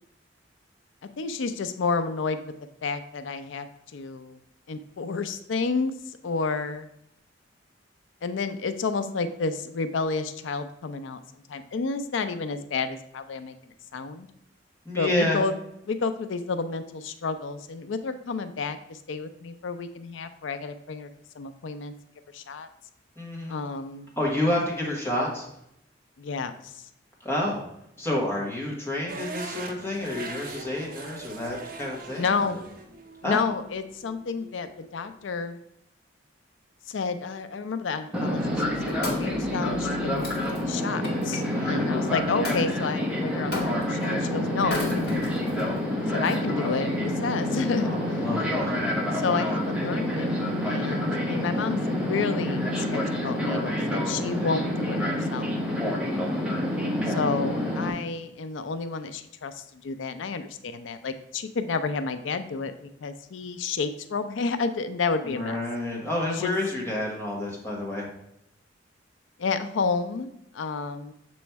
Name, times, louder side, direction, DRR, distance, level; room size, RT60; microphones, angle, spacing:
voice 1, 1.2-2.5 2.8-3.7 3.9-4.4 4.7-6.9 8.2-11.2 11.5-13.6 13.9-14.3 15.0-15.5 15.9-21.1 21.3-21.9 22.3-22.7 23.5-24.1 26.2-26.9 32.2-32.6 33.2-35.6 36.9-45.3 46.0-48.2 49.1-55.5 57.1-65.6 66.3-66.5 69.4-70.3 70.5-71.1, left 4 dB, 80° left, 10 dB, 0.4 m, -30 dB
voice 2, 14.8-15.4 23.2-23.6 24.2-25.5 27.2-27.6 28.0-32.4 33.2-33.4 41.5-42.2 47.8-48.8 65.2-68.1, left 1 dB, 15° left, -3 dB, 1.5 m, -29 dB
sound 1, 29.1-35.2, right 3 dB, 50° right, 0.6 m, -41 dB
Fixed-wing aircraft airplane, 38.1-57.9, left 1 dB, 5° right, 0.9 m, -28 dB
Wood, 38.6-41.4 42.4-42.7 43.5-44.0 44.6-45.6 46.3-46.4, left 2 dB, 55° left, 1.5 m, -34 dB
6.9 x 3.1 x 4.5 m, 0.78 s
head